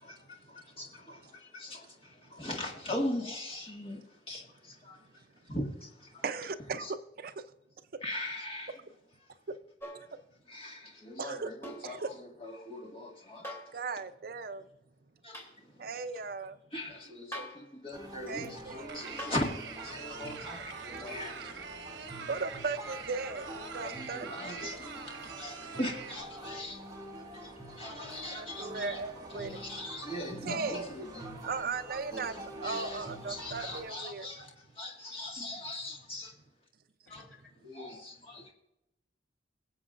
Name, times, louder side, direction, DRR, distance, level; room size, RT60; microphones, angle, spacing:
voice 1, 0.0-6.2 6.8-6.9 8.0-8.8 10.5-13.6 15.2-15.9 16.7-21.4 22.2-22.3 23.8-24.9 25.4-26.8 27.4-27.5 27.8-29.0 29.3-31.3 32.1-36.4 37.1-37.2 37.6-38.5, left 1 dB, 30° left, 2.0 m, -40 dB
voice 2, 6.2-7.4 9.5-9.6 11.2-11.5 11.8-12.1 13.7-14.6 15.8-16.6 18.3-19.0 19.9-20.1 20.8-20.9 22.2-24.3 24.6-24.8 28.3-29.6 30.4-30.9 31.4-32.3 32.6-34.3, right 4 dB, 55° right, 0.6 m, -37 dB
sound 1, 9.8-10.1 11.6-11.9 13.4-13.8 15.3-15.5 17.3-17.7 19.2-19.5 21.2-21.3, equal, 15° left, 3.0 m, -42 dB
sound 2, 17.9-33.9, right 1 dB, 20° right, 2.2 m, -46 dB
sound 3, 18.9-26.2, right 6 dB, 85° right, 1.0 m, -44 dB
voice 3, 20.7-22.1 37.0-37.5, left 2 dB, 80° left, 3.0 m, -58 dB
23.0 x 7.8 x 2.5 m
head